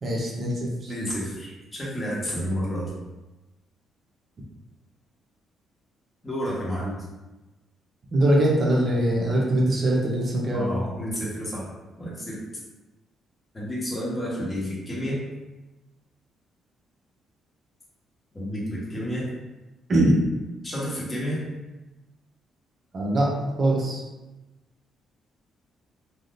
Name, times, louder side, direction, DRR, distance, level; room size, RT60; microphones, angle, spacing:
voice 1, 0.0-0.9 8.1-10.6 19.9-20.2 22.9-24.0, right 1 dB, 45° right, -3 dB, 0.7 m, -22 dB
voice 2, 0.9-2.9 6.2-7.0 10.5-11.7 12.0-12.4 13.5-15.2 18.3-19.3 20.6-21.4, equal, 25° left, -6 dB, 1.2 m, -30 dB
3.5 x 2.4 x 2.5 m, 1.1 s
cardioid pair, 90°, 0 cm